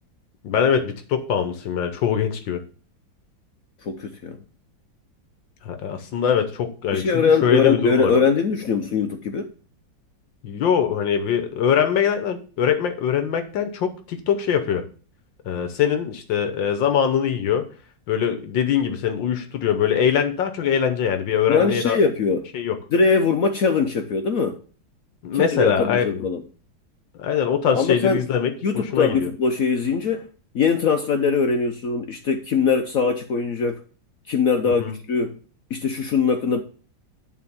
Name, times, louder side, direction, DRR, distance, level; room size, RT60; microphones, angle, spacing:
voice 1, 0.4-2.6 5.6-8.1 10.4-14.8 15.5-17.7 18.1-22.0 22.5-22.8 25.2-26.3 27.2-29.3 34.7-34.9, left 8 dB, 75° left, 1.7 m, -22 dB
voice 2, 3.8-4.4 6.9-9.5 21.5-22.5 22.9-24.6 25.3-26.4 27.7-28.2 28.6-30.3 30.5-33.8 34.3-35.4 35.7-36.6, left 5 dB, 60° left, 1.0 m, -21 dB
11.0 x 3.8 x 7.1 m
omnidirectional pair, 2.1 m